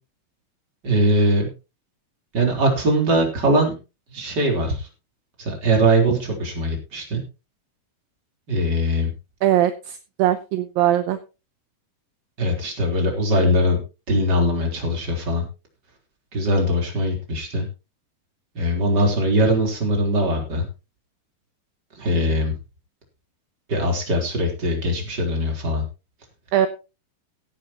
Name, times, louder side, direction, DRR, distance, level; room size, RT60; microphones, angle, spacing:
voice 1, 0.8-1.5 2.3-3.8 4.1-4.9 5.4-7.2 8.5-9.1 12.4-13.8 14.1-15.5 16.3-17.7 18.5-20.6 22.0-22.5 23.7-25.8, equal, 25° right, 1 dB, 4.1 m, -21 dB
voice 2, 9.4-11.2 26.5-26.7, right 12 dB, 75° right, 10 dB, 2.4 m, -20 dB
17.0 x 10.0 x 2.9 m, 0.29 s
omnidirectional pair, 4.5 m